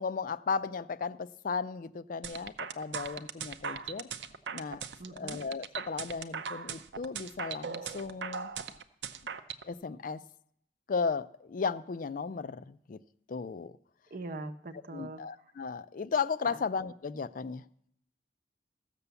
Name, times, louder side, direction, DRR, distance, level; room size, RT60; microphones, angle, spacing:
voice 1, 0.0-4.1 4.5-4.8 5.1-8.5 9.6-10.2 10.9-13.0 13.3-13.7 14.9-17.6, left 5 dB, 50° left, 15 dB, 0.4 m, -35 dB
sound 1, 2.2-9.6, right 6 dB, 80° right, 0.7 m, -39 dB
voice 2, 5.0-5.4 14.1-15.2 16.4-16.5, right 2 dB, 50° right, 7 dB, 0.8 m, -41 dB
15.0 x 6.9 x 6.9 m, 0.69 s
head